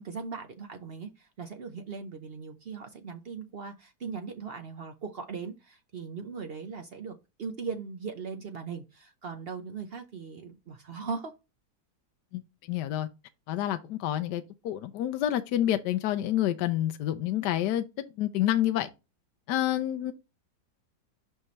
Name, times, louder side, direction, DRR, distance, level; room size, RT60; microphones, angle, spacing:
voice 1, 0.0-11.3, right 5 dB, 65° right, 0.5 m, -39 dB
voice 2, 12.7-13.1 13.5-18.9 19.5-20.1, left 12 dB, 75° left, 1.2 m, -28 dB
5.7 x 5.5 x 3.1 m
omnidirectional pair, 1.9 m